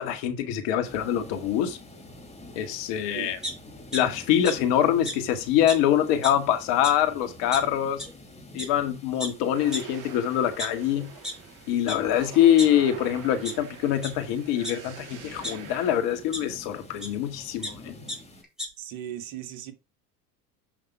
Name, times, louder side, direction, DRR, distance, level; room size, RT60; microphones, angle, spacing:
voice 1, 0.0-1.8 2.6-3.4 3.9-8.0 8.5-11.1 11.7-17.9, left 10 dB, 65° left, 2.0 m, -24 dB
sound 1, 0.8-18.4, left 1 dB, 15° left, 4.4 m, -48 dB
sound 2, 3.4-4.0 4.4-4.5 5.1-5.2 5.7-5.8 6.1-6.4 6.8-6.9 7.5-7.6 8.0-8.1 8.6-8.7 9.2-9.3 9.7-9.8 10.4-11.3 11.9-12.0 12.3-13.0 13.4-13.5 14.0-14.1 14.6-15.5 16.3-16.4 17.0-17.1 17.4-17.7 18.1-18.2 18.4-18.7, equal, ahead, 4.6 m, -33 dB
sound 3, 9.5-16.0, right 7 dB, 45° right, 2.4 m, -45 dB
voice 2, 18.8-19.7, right 11 dB, 65° right, 2.0 m, -37 dB
7.9 x 5.9 x 4.5 m
hypercardioid pair, 85°, 45 cm